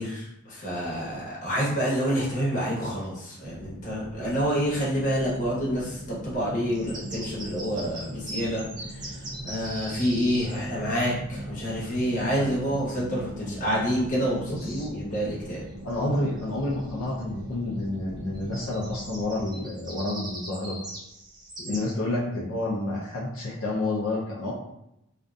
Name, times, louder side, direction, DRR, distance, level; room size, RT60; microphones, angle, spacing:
voice 1, 0.0-8.6 8.9-9.2 9.4-15.6 21.6-21.8, equal, 35° left, -7 dB, 0.9 m, -28 dB
sound 1, 3.4-19.5, right 1 dB, 75° right, 0.5 m, -40 dB
sound 2, 6.7-10.7 14.1-14.2 14.8-15.2 15.5-15.6 15.9-17.0 18.3-21.8, right 1 dB, 20° right, 0.5 m, -40 dB
voice 2, 14.5-14.9 15.8-20.8 21.7-24.5, left 2 dB, 75° left, -5 dB, 0.5 m, -29 dB
2.6 x 2.4 x 2.3 m, 0.82 s
head